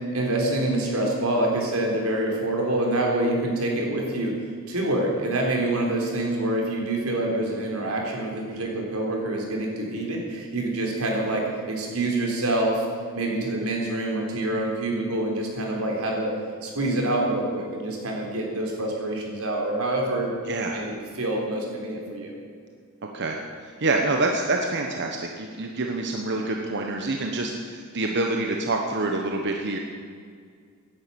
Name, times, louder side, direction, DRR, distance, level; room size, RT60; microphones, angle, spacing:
voice 1, 0.1-4.4 4.7-12.9 13.1-16.3 16.6-20.3 20.7-22.3, right 1 dB, 90° right, 0 dB, 3.9 m, -26 dB
voice 2, 20.5-20.9 23.0-29.8, right 2 dB, 55° right, 2 dB, 1.2 m, -27 dB
17.0 x 10.5 x 7.0 m, 2.1 s
head